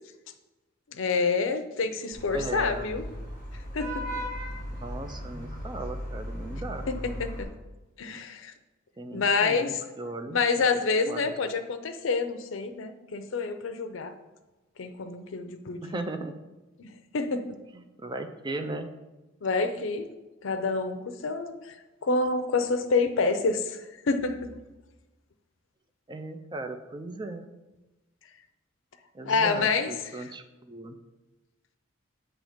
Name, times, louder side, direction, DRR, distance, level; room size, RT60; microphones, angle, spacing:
voice 1, 0.9-3.1 3.7-4.0 6.9-7.0 7.2-7.5 8.0-8.5 9.1-9.8 10.3-14.1 14.8-15.9 16.8-17.6 19.4-20.1 20.4-21.8 22.0-24.4 29.3-30.3, left 4 dB, 70° left, 8 dB, 0.5 m, -28 dB
Vehicle horn car horn honking / Traffic noise roadway noise, 2.1-7.4, equal, 50° right, 1.6 m, -37 dB
voice 2, 2.3-2.9 4.7-6.9 9.0-10.7 11.1-11.3 15.8-16.3 17.7-18.9 26.1-27.5 29.1-31.0, right 2 dB, 20° right, 7 dB, 0.4 m, -37 dB
7.7 x 3.0 x 5.0 m, 1.1 s
head